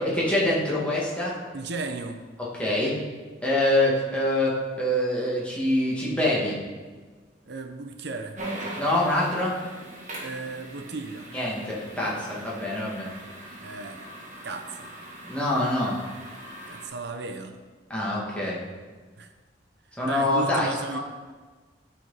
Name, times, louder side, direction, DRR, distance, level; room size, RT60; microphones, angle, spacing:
voice 1, 0.0-1.4 2.5-3.0 3.4-6.6 8.7-9.6 11.3-13.1 15.3-16.0 17.9-18.6 20.0-21.0, left 1 dB, 5° left, -6 dB, 1.8 m, -25 dB
voice 2, 1.5-2.3 7.5-8.4 10.2-11.3 13.6-14.1 14.4-14.9 15.2-15.3 16.7-17.6 19.2-19.3 20.0-21.0, right 3 dB, 65° right, 6 dB, 0.7 m, -35 dB
washing machine, 8.4-16.9, right 1 dB, 45° right, 1.6 m, -41 dB
12.0 x 4.6 x 4.0 m, 1.4 s
head